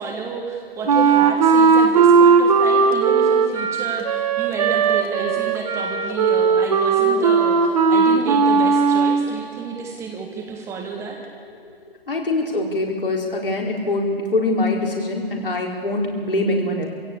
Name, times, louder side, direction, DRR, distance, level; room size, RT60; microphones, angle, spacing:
voice 1, 0.0-11.2, right 5 dB, 10° right, 1 dB, 1.5 m, -31 dB
Wind instrument woodwind instrument, 0.9-9.3, right 5 dB, 40° right, 1.6 m, -17 dB
voice 2, 12.1-16.9, left 2 dB, 65° left, -1 dB, 4.5 m, -23 dB
25.0 x 16.5 x 8.5 m, 2.1 s
figure-of-eight pair, 135°, 29 cm